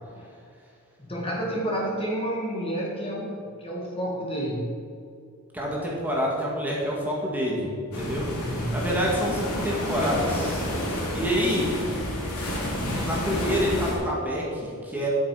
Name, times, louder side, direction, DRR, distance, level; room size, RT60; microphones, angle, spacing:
voice 1, 1.0-4.7 8.0-8.8, right 1 dB, 25° left, -3 dB, 1.9 m, -31 dB
voice 2, 5.5-7.7 7.9-8.3 8.7-11.7 13.0-15.1, equal, 10° right, -4 dB, 1.8 m, -27 dB
sound 1, 7.9-14.0, left 1 dB, 85° left, 3.0 m, -29 dB
10.0 x 8.5 x 4.9 m, 2.4 s
head